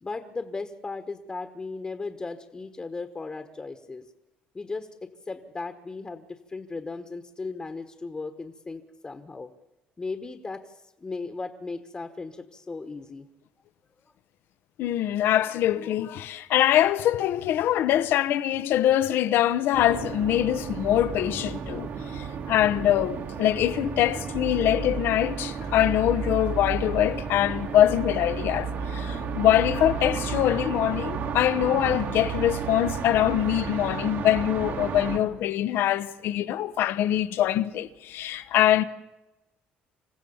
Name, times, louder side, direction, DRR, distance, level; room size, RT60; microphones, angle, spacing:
voice 1, 0.0-4.0 4.5-9.5 10.0-13.3 14.0-14.1, left 3 dB, 25° left, 1.4 m, -36 dB
voice 2, 14.8-38.8, left 12 dB, 70° left, 1.0 m, -24 dB
sound 1, 19.7-35.2, right 6 dB, 65° right, 2.9 m, -32 dB
27.0 x 15.5 x 7.1 m
cardioid pair, 100°, 4 cm